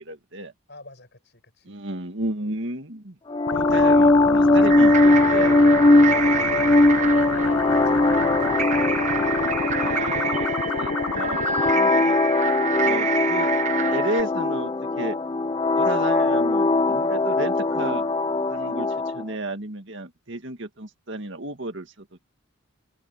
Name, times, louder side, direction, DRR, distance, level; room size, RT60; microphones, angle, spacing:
voice 1, 0.0-0.5 1.6-3.2 3.5-5.8 9.8-10.5 10.7-12.2 12.8-13.5 13.9-15.2 15.8-18.0 18.5-18.9 19.1-21.9, right 2 dB, 55° right, 2.1 m, -32 dB
voice 2, 0.7-1.8 6.1-8.8, left 2 dB, 50° left, 7.7 m, -44 dB
sound 1, 3.3-19.2, left 2 dB, 20° left, 0.4 m, -20 dB
sound 2, 3.5-11.7, left 6 dB, 90° left, 0.7 m, -29 dB
sound 3, 4.6-14.2, right 7 dB, 35° right, 1.1 m, -28 dB
head